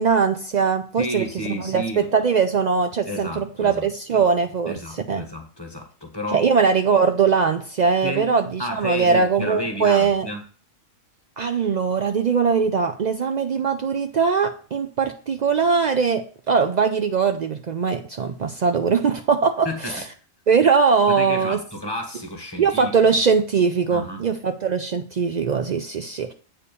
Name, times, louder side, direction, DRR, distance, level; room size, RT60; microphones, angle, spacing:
voice 1, 0.0-5.2 6.3-10.3 11.4-20.0 20.5-21.6 22.6-26.3, right 5 dB, 85° right, 0.3 m, -21 dB
voice 2, 1.0-2.1 3.1-3.9 4.1-4.2 4.7-6.4 8.0-8.3 8.6-10.4 19.6-19.9 21.1-22.9 23.9-24.2, equal, 20° left, 1.4 m, -31 dB
8.4 x 3.8 x 6.8 m
omnidirectional pair, 1.4 m